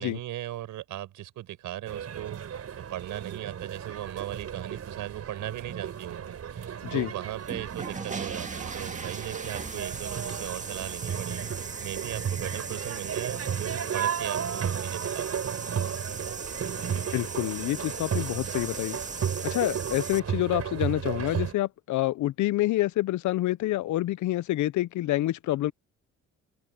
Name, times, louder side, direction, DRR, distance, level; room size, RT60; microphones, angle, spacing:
voice 1, 0.0-15.6 18.1-18.3 19.6-19.8, right 14 dB, 85° right, 6.3 m, -38 dB
sound 1, 1.9-21.5, right 8 dB, 55° right, 5.1 m, -34 dB
sound 2, 7.3-20.2, right 4 dB, 25° right, 2.0 m, -39 dB
voice 2, 17.1-19.0 19.4-25.7, left 15 dB, 75° left, 0.7 m, -27 dB
cardioid pair, 90°, 30 cm